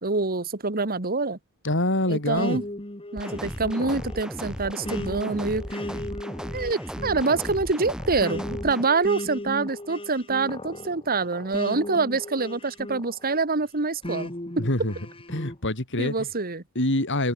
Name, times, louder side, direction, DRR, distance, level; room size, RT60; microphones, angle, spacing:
voice 1, 0.0-1.4 2.1-2.7 3.1-5.8 6.5-14.3 14.6-14.7 16.0-16.6, right 3 dB, 45° right, 1.8 m, -26 dB
voice 2, 1.6-2.6 14.6-14.9 15.3-16.1 16.7-17.3, left 1 dB, 60° left, 6.3 m, -25 dB
sound 1, 2.4-13.4 14.0-15.6, left 1 dB, 25° left, 3.1 m, -37 dB
sound 2, 3.2-8.8, equal, 5° right, 6.7 m, -36 dB
head